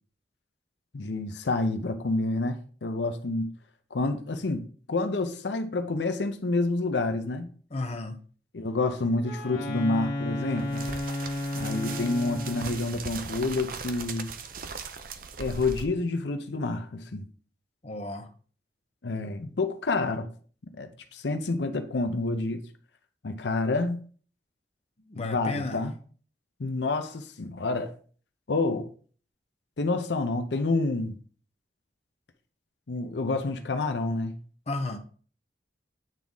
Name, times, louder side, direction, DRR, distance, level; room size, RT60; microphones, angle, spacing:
voice 1, 0.9-3.5 3.9-7.5 8.5-10.8 11.5-14.3 15.4-17.3 19.0-20.3 20.8-22.6 23.2-24.0 25.2-25.9 26.6-27.9 28.5-28.9 29.8-31.2 32.9-34.4, left 3 dB, 80° left, 0.7 m, -28 dB
voice 2, 7.7-8.2 17.8-18.3 25.0-25.8 34.7-35.0, left 2 dB, 35° left, 0.7 m, -33 dB
Wind instrument woodwind instrument, 9.2-12.9, left 1 dB, 55° left, 1.8 m, -33 dB
sound 1, 10.3-15.8, right 5 dB, 55° right, 0.6 m, -39 dB
9.0 x 3.5 x 3.9 m
head